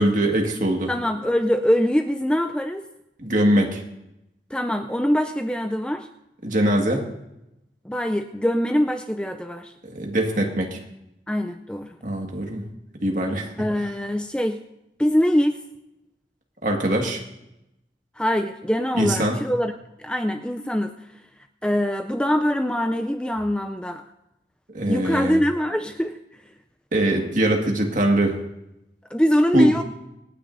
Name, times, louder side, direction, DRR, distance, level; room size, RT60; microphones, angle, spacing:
voice 1, 0.0-0.9 3.2-3.8 6.4-7.0 9.8-10.8 12.0-12.6 13.0-13.7 16.6-17.2 18.9-19.4 24.7-25.4 26.9-28.4 29.5-29.7, right 1 dB, 45° right, 1 dB, 1.9 m, -22 dB
voice 2, 0.9-2.8 4.5-6.1 7.9-9.7 11.3-12.0 13.6-14.6 15.0-15.6 18.2-19.7 20.0-20.9 21.6-24.0 24.8-26.1 29.1-29.8, equal, 5° left, 5 dB, 0.4 m, -23 dB
26.5 x 9.5 x 2.7 m, 0.88 s
head